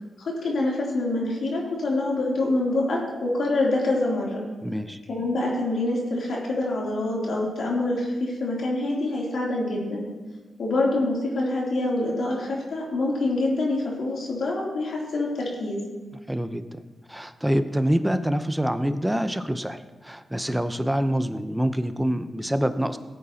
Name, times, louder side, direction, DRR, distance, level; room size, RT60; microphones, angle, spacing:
voice 1, 0.2-4.4 5.1-10.1 10.6-15.8, left 2 dB, 75° left, -4 dB, 3.3 m, -26 dB
voice 2, 4.6-5.0 16.3-16.8 17.1-23.0, equal, 10° right, 10 dB, 0.8 m, -26 dB
16.5 x 8.7 x 3.0 m, 1.2 s
supercardioid pair, 50°, 0 cm